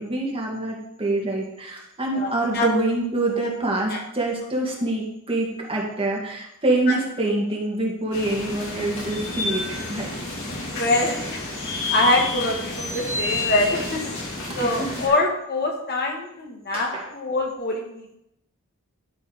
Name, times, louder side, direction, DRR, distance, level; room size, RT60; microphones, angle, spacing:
voice 1, 0.0-10.1 14.6-14.9 16.7-17.1, right 2 dB, 25° right, -2 dB, 2.0 m, -26 dB
voice 2, 2.1-2.7 3.9-4.0 6.9-7.0 10.7-11.4 11.9-14.0 14.5-18.2, left 2 dB, 45° left, -1 dB, 1.9 m, -24 dB
sound 1, 8.1-15.1, left 3 dB, 65° left, 3.0 m, -29 dB
12.5 x 4.5 x 5.0 m, 0.79 s
head